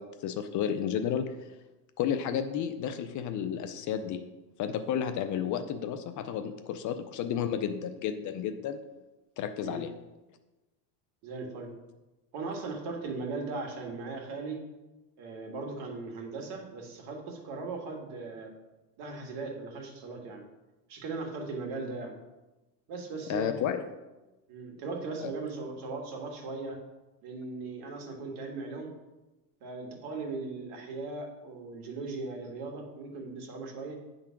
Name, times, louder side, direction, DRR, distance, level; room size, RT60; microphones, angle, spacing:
voice 1, 0.0-1.3 2.0-4.2 4.6-8.8 9.4-9.9 23.3-23.9 25.2-25.3, left 8 dB, 40° left, 9 dB, 0.5 m, -32 dB
voice 2, 11.2-11.7 12.3-14.6 15.2-18.5 19.0-20.4 20.9-22.2 22.9-23.6 24.5-26.8 27.2-28.9 29.6-34.0, right 3 dB, 60° right, 2 dB, 2.0 m, -38 dB
9.8 x 3.9 x 5.8 m, 1.1 s
supercardioid pair, 120°, 49 cm